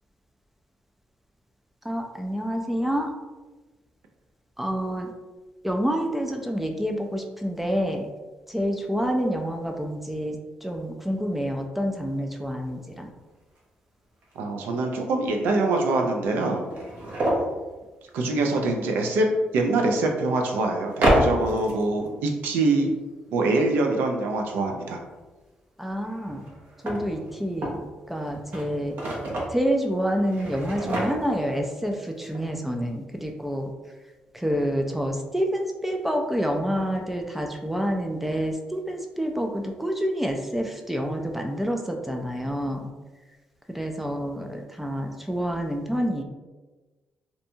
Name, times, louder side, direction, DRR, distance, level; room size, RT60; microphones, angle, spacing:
voice 1, 1.8-3.1 4.6-5.1 5.6-8.1 8.5-13.1 25.8-26.5 26.8-27.8 28.1-29.0 29.5-33.7 34.3-42.9 43.7-46.2, equal, 5° right, 2 dB, 0.3 m, -28 dB
sound 1, 13.2-13.3 13.6-13.7 14.2-14.3 15.4-15.5 15.7-15.8 16.4-17.5 19.6-19.7 20.9-22.1 26.0-27.8 28.2-29.6 30.2-31.5 31.9-32.0 32.2-32.4, right 1 dB, 65° right, 0.7 m, -27 dB
voice 2, 14.4-16.7 18.1-19.3 19.5-22.9 23.3-25.0, right 2 dB, 90° right, 2 dB, 0.4 m, -24 dB
2.6 x 2.2 x 2.7 m, 1.2 s
cardioid pair, 85°, 3 cm